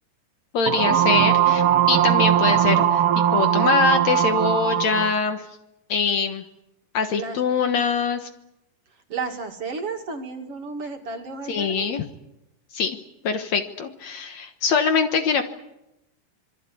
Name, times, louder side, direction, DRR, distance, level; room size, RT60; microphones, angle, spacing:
voice 1, 0.5-3.0 3.3-5.5 5.9-6.4 6.9-8.3 11.5-12.0 12.7-13.0 13.2-15.4, left 6 dB, 60° left, 7 dB, 2.3 m, -23 dB
sound 1, 0.7-5.2, right 10 dB, 60° right, 1.6 m, -19 dB
voice 2, 9.1-11.9, right 4 dB, 45° right, 4 dB, 3.0 m, -32 dB
26.5 x 22.5 x 8.5 m, 0.90 s
omnidirectional pair, 3.9 m